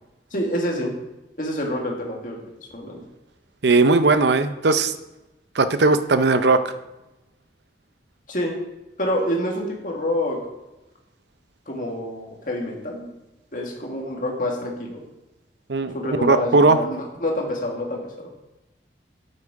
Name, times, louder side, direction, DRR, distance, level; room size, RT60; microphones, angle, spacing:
voice 1, 0.3-0.9 1.4-2.4 2.7-3.0 8.3-8.5 9.0-10.4 11.7-13.1 13.5-15.0 15.9-18.0, left 1 dB, 45° left, 0 dB, 2.0 m, -27 dB
voice 2, 3.6-4.9 5.5-6.7 15.7-16.0 16.2-16.8, right 3 dB, 75° right, 11 dB, 0.6 m, -18 dB
8.6 x 8.4 x 4.9 m, 0.98 s
head